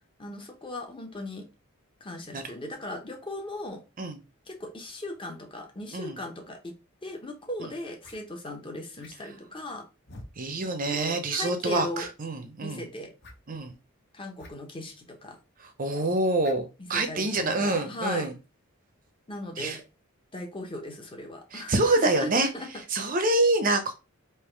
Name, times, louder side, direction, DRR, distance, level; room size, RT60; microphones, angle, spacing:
voice 1, 0.2-1.5 2.0-3.8 4.5-6.7 7.0-9.8 10.9-12.1 12.6-13.1 14.1-15.4 16.8-18.3 19.3-19.8 20.3-22.7, left 1 dB, 25° left, 0.9 m, -37 dB
sound 1, 7.1-7.2 8.0-8.2 9.0-9.4 10.0-10.3 10.9-11.0 11.3-11.4 11.9-12.3 13.2-13.4 14.4-14.5 14.8-14.9 16.4-16.6, left 2 dB, 50° left, 1.2 m, -47 dB
voice 2, 10.4-12.9 13.5-13.8 15.6-18.3 19.6-19.8 21.5-22.5 22.9-23.9, right 2 dB, 40° right, 0.6 m, -26 dB
3.5 x 2.9 x 4.5 m
head